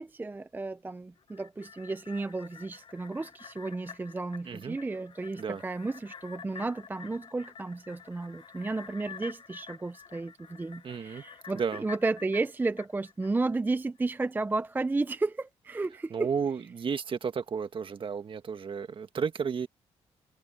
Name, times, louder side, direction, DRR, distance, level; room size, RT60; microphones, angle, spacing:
voice 1, 0.0-16.3, right 3 dB, 15° right, 0.5 m, -33 dB
sound 1, 1.2-13.7 14.1-14.2, left 7 dB, 45° left, 0.9 m, -49 dB
voice 2, 4.4-4.8 5.4-5.6 10.8-11.2 11.5-11.9 16.1-19.7, right 6 dB, 45° right, 1.7 m, -32 dB
cardioid pair, 90°, 12 cm